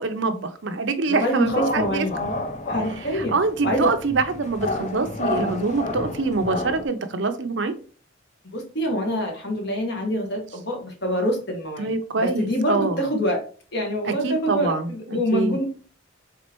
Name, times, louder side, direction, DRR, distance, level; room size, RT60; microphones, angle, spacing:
voice 1, 0.0-2.1 3.1-7.7 11.8-13.0 14.0-15.6, right 3 dB, 65° right, 0.6 m, -25 dB
voice 2, 1.1-2.2 2.6-3.3 3.6-3.9 8.4-11.9 12.2-13.4 13.7-15.7, equal, 55° left, 1.5 m, -25 dB
sound 1, 1.4-6.9, left 2 dB, 35° left, 0.5 m, -30 dB
4.2 x 3.7 x 3.0 m
head